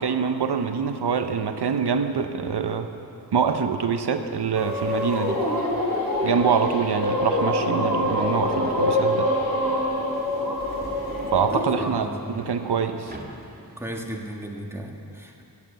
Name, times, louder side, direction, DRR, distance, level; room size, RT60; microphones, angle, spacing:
voice 1, 0.0-2.9 3.3-5.4 6.2-9.3 11.3-12.0 12.3-13.2, right 6 dB, 90° right, 7 dB, 0.7 m, -25 dB
Subway metro underground, 4.1-13.9, right 1 dB, 25° right, 1.6 m, -39 dB
sound 1, 4.5-11.6, left 1 dB, 60° right, 4.2 m, -26 dB
sound 2, 7.3-11.6, equal, 50° left, 4.0 m, -32 dB
voice 2, 11.5-12.1 13.8-15.4, right 1 dB, 5° right, 0 dB, 1.6 m, -35 dB
14.0 x 8.1 x 8.0 m, 2.6 s
wide cardioid pair, 80°, 39 cm